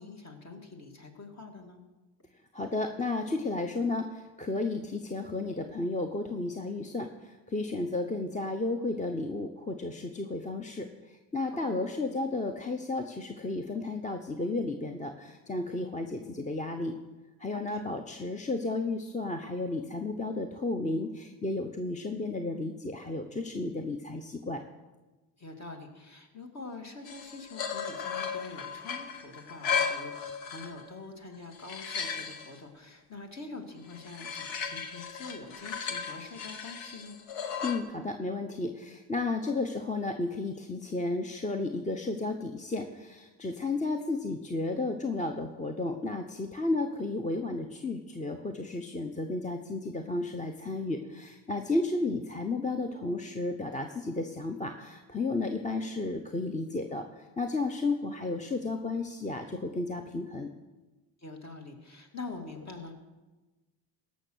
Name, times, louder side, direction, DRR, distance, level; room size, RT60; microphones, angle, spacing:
voice 1, 0.0-1.8 11.5-11.8 17.5-17.9 25.4-37.2 61.2-62.9, left 3 dB, 35° left, 4 dB, 2.2 m, -45 dB
voice 2, 2.5-16.9 17.4-24.6 37.6-60.5, left 2 dB, 15° left, 6 dB, 0.8 m, -33 dB
sound 1, 27.1-30.9 31.3-32.5 33.9-37.8, left 6 dB, 90° left, 1.2 m, -35 dB
16.0 x 6.3 x 6.3 m, 1.2 s
supercardioid pair, 75°, 43 cm